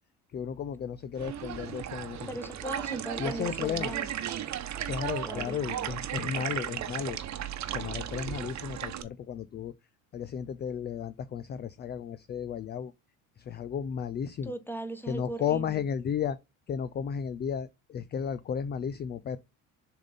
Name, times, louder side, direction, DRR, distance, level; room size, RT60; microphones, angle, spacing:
voice 1, 0.3-2.3 3.2-3.9 4.9-7.2 7.7-9.7 10.1-12.9 13.4-14.5 15.1-16.4 16.7-19.4, left 7 dB, 25° left, 0.4 m, -34 dB
sound 1, 1.2-9.0, right 10 dB, 40° right, 1.1 m, -35 dB
voice 2, 2.3-4.1 5.2-5.9 14.4-15.8, right 1 dB, 5° left, 1.2 m, -39 dB
7.1 x 3.7 x 4.0 m
hypercardioid pair, 85°, 41 cm